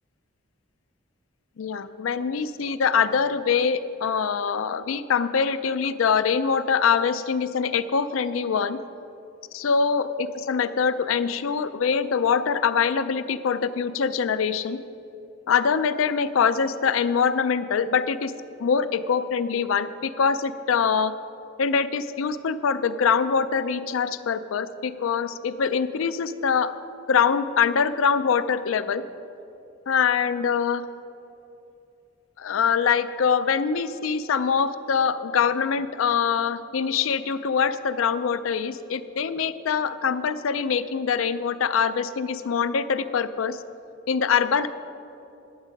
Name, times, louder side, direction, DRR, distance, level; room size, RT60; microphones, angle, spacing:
voice 1, 1.6-8.8 9.5-14.8 15.5-18.3 18.6-21.1 21.6-26.7 27.1-29.0 29.9-30.8 32.4-43.6 44.1-44.7, left 6 dB, 85° left, 13 dB, 0.4 m, -24 dB
11.0 x 7.4 x 5.2 m, 2.9 s
head